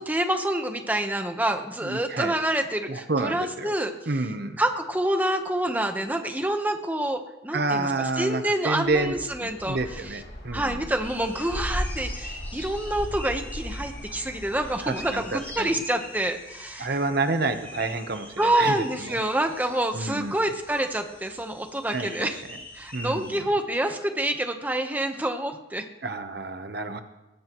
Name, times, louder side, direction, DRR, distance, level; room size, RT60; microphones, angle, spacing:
voice 1, 0.0-3.9 4.6-9.8 10.5-16.9 18.4-22.4 22.7-25.8, right 1 dB, 10° right, 5 dB, 1.0 m, -27 dB
voice 2, 1.8-2.3 2.9-3.8 4.1-4.6 7.5-10.8 14.8-15.8 16.8-19.2 19.9-20.3 21.9-22.3 22.9-23.5 26.0-27.0, right 3 dB, 55° right, 8 dB, 1.0 m, -29 dB
sound 1, 8.8-15.6, equal, 60° left, 2.7 m, -37 dB
sound 2, 11.0-23.4, left 1 dB, 10° left, 5.1 m, -44 dB
20.5 x 18.5 x 3.1 m, 1.0 s
head